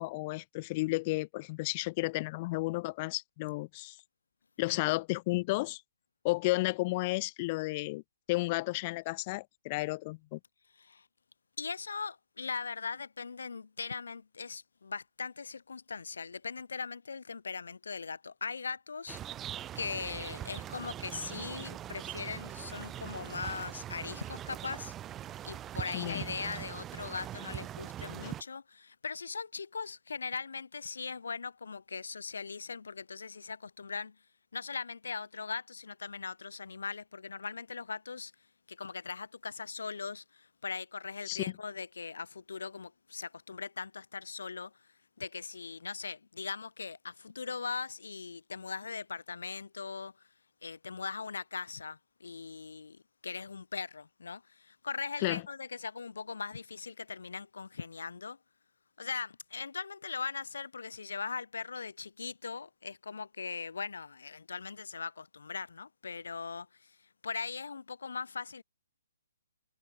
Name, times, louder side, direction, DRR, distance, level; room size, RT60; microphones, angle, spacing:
voice 1, 0.0-4.0 4.6-5.8 6.2-8.0 8.3-10.4 25.9-26.2 41.3-41.5 55.2-55.4, left 23 dB, 35° left, 2.2 m, -32 dB
voice 2, 10.7-11.1 11.6-19.2 19.7-24.9 25.4-34.1 34.5-38.3 38.7-44.9 45.2-50.1 50.6-58.4 59.0-68.6, left 5 dB, 75° left, 1.3 m, -40 dB
sound 1, 19.1-28.4, right 11 dB, 20° right, 5.1 m, -42 dB
hypercardioid pair, 140°, 0 cm